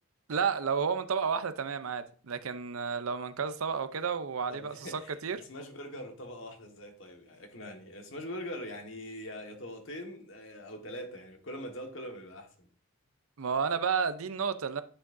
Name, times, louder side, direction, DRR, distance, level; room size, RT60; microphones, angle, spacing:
voice 1, 0.3-5.4 13.4-14.8, right 6 dB, 85° right, 0.6 m, -31 dB
voice 2, 4.5-5.2 5.5-12.7, equal, 65° left, 1.5 m, -42 dB
9.9 x 6.1 x 2.6 m
head